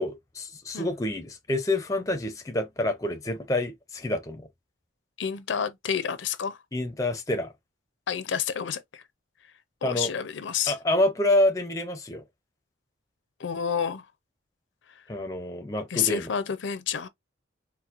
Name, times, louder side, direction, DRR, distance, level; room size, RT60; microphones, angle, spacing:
voice 1, 0.0-4.5 6.7-7.5 9.8-10.1 10.7-12.2 15.1-16.3, left 1 dB, 15° left, 0.5 m, -27 dB
voice 2, 5.2-6.6 8.1-9.0 9.8-10.8 13.4-14.1 15.9-17.1, left 7 dB, 70° left, 0.5 m, -29 dB
4.3 x 2.1 x 2.4 m
head